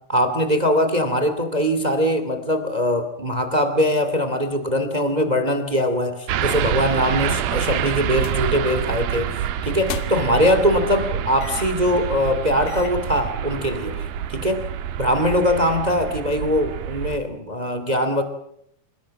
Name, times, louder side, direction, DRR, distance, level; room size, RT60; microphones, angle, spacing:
voice 1, 0.1-14.6 15.0-18.2, equal, 30° right, 9 dB, 0.7 m, -22 dB
sound 1, 6.3-17.2, right 10 dB, 75° right, 2.2 m, -27 dB
sound 2, 8.1-8.5 8.8-9.0 9.7-10.4 11.4-11.8 12.3-12.4 12.7-13.1, left 10 dB, 80° left, 4.1 m, -37 dB
27.0 x 19.5 x 7.7 m, 0.73 s
omnidirectional pair, 5.7 m